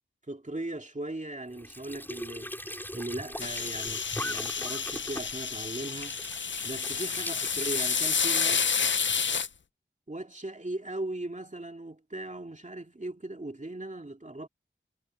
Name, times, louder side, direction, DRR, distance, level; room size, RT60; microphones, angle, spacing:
voice 1, 0.3-2.5 2.9-6.2 6.6-8.7 10.1-14.5, right 2 dB, 35° right, 2.5 m, -38 dB
Squeak / Sink (filling or washing) / Trickle dribble, 1.5-9.4, equal, 10° left, 4.8 m, -41 dB
sound 1, 3.4-9.5, left 6 dB, 65° left, 0.5 m, -30 dB
wide cardioid pair, 40°, 21 cm